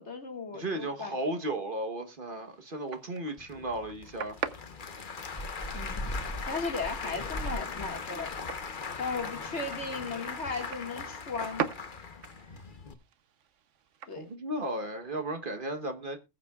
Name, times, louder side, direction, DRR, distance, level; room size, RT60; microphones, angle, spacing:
voice 1, 0.0-1.2 5.7-6.0 6.4-8.4 9.0-11.6 14.1-14.3, left 4 dB, 60° left, 2.2 m, -36 dB
voice 2, 0.5-4.4 14.1-16.2, right 1 dB, 45° right, 1.3 m, -35 dB
sound 1, 2.4-14.4, right 7 dB, 75° right, 1.2 m, -43 dB
Applause / Crowd, 3.4-12.9, left 5 dB, 45° left, 1.1 m, -40 dB
sound 2, 5.4-8.7 8.9-9.5 9.8-9.9 10.1-10.2, equal, 15° left, 2.0 m, -39 dB
20.0 x 8.3 x 2.3 m
omnidirectional pair, 1.3 m